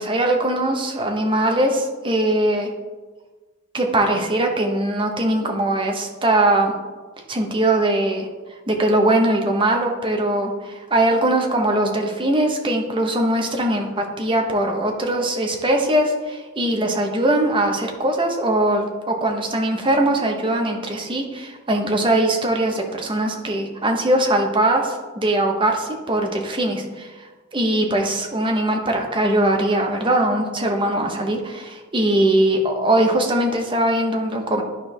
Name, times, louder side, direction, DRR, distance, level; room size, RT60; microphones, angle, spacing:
voice 1, 0.0-2.7 3.7-6.7 7.3-8.3 8.7-27.2 27.5-34.6, right 1 dB, 25° right, 2 dB, 0.9 m, -21 dB
11.0 x 4.5 x 3.3 m, 1.3 s
head